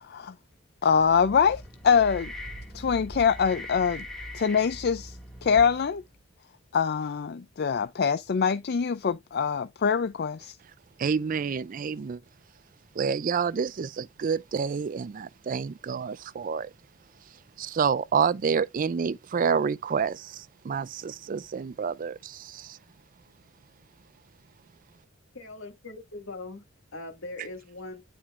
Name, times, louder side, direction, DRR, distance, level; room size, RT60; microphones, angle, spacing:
voice 1, 0.0-0.3 0.8-2.3 2.7-4.1 4.3-6.0 6.7-10.6, left 6 dB, 50° left, 0.4 m, -24 dB
sound 1, 0.8-6.2, left 1 dB, ahead, 2.0 m, -41 dB
voice 2, 11.0-12.2 13.0-16.7 17.6-20.3 20.6-22.7, right 6 dB, 40° right, 0.4 m, -28 dB
voice 3, 25.3-26.6 26.9-28.0, left 2 dB, 70° left, 2.1 m, -40 dB
9.9 x 4.4 x 2.4 m
head